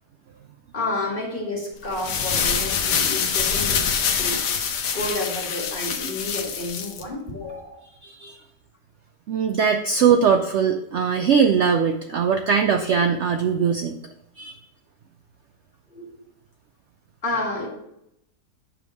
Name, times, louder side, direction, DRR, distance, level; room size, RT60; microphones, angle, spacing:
voice 1, 0.7-3.9 4.2-4.4 4.9-7.8 15.9-16.1 17.2-17.7, left 2 dB, 30° left, -2 dB, 2.0 m, -30 dB
sound 1, 1.8-7.0, left 6 dB, 80° left, 1.4 m, -25 dB
voice 2, 8.0-8.4 9.3-14.0 14.4-14.6, right 6 dB, 80° right, 5 dB, 0.6 m, -21 dB
8.8 x 3.5 x 6.2 m, 0.79 s
omnidirectional pair, 1.8 m